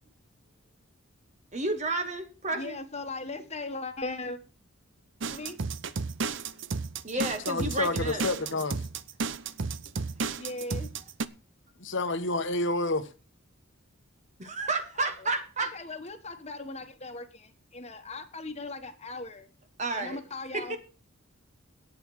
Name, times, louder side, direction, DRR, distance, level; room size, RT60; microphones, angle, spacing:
voice 1, 1.5-2.8 7.0-8.2 14.4-15.7 19.8-20.2 20.5-20.8, right 2 dB, 35° right, 1.3 m, -31 dB
voice 2, 2.5-4.4 5.3-5.6 10.4-10.9 15.0-15.3 15.6-19.5 20.0-20.8, left 2 dB, 30° left, 1.4 m, -38 dB
sound 1, 5.2-11.2, right 4 dB, 60° right, 0.7 m, -33 dB
voice 3, 7.5-8.8 11.8-13.0, left 2 dB, 55° left, 1.1 m, -29 dB
10.5 x 8.9 x 6.2 m
head